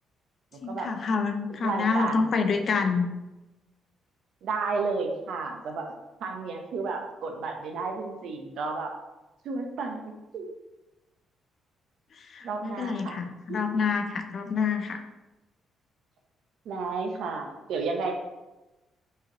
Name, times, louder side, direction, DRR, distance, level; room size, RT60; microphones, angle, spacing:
voice 1, 0.6-3.1 12.1-15.0, left 5 dB, 55° left, 7 dB, 0.4 m, -27 dB
voice 2, 1.6-2.3 4.4-5.9 6.2-8.9 9.4-10.5 12.4-13.2 13.5-13.6 16.7-18.1, right 4 dB, 75° right, 3 dB, 0.6 m, -32 dB
4.6 x 3.0 x 2.9 m, 1.0 s
cardioid pair, 90°, 0 cm